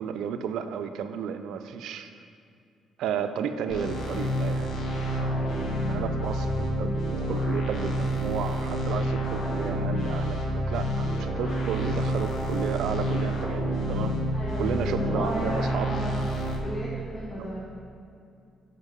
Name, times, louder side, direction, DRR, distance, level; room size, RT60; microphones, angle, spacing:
voice 1, 0.0-2.1 3.0-4.7 5.2-5.3 5.9-14.2 14.6-15.9 17.4-17.5, right 7 dB, 85° right, 9 dB, 0.4 m, -33 dB
sound 1, 3.7-16.6, equal, 60° left, 1.3 m, -28 dB
voice 2, 14.3-16.1 16.6-17.6, equal, 30° left, -5 dB, 1.5 m, -34 dB
8.1 x 5.6 x 5.3 m, 2.4 s
cardioid pair, 90°, 0 cm